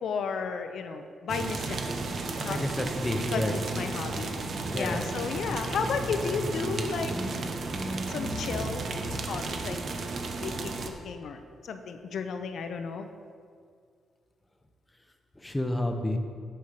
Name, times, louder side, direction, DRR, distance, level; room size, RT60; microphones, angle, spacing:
voice 1, 0.0-2.6 3.3-4.3 4.7-7.1 8.1-8.8 9.3-9.8 10.4-10.8 11.0-13.1, left 5 dB, 70° left, 8 dB, 0.7 m, -33 dB
sound 1, 1.3-10.9, right 3 dB, 55° right, 0.9 m, -34 dB
voice 2, 2.4-3.5 4.7-5.1 15.4-16.2, left 1 dB, 15° left, 5 dB, 0.9 m, -30 dB
sound 2, 3.3-9.1, equal, 20° right, 2.2 m, -37 dB
8.4 x 5.6 x 6.5 m, 2.2 s
cardioid pair, 100°, 0 cm